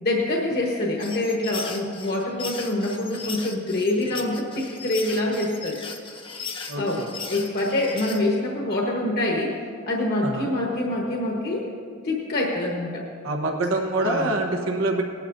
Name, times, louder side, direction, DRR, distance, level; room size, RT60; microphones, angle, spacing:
voice 1, 0.0-5.8 6.7-7.0 7.3-9.5 9.9-11.7 12.0-13.1 14.0-14.3, left 1 dB, 50° left, -2 dB, 1.2 m, -25 dB
sound 1, 1.0-8.3, left 5 dB, 25° left, 0.8 m, -37 dB
voice 2, 6.7-7.1 10.2-10.5 13.2-15.0, right 2 dB, 85° right, 2 dB, 1.1 m, -25 dB
19.0 x 11.5 x 2.6 m, 2.3 s
head